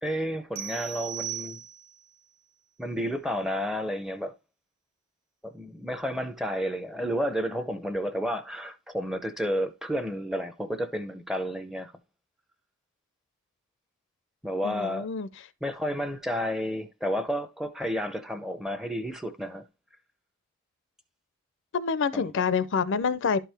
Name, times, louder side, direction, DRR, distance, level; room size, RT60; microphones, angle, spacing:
voice 1, 0.0-1.6 2.8-4.3 5.4-11.9 14.4-15.1 15.6-19.6 22.1-22.3, equal, ahead, 0.5 m, -31 dB
sound 1, 0.6-2.1, right 11 dB, 65° right, 0.6 m, -37 dB
voice 2, 14.6-15.3 21.7-23.4, left 5 dB, 60° left, 0.5 m, -27 dB
11.5 x 4.6 x 3.3 m
head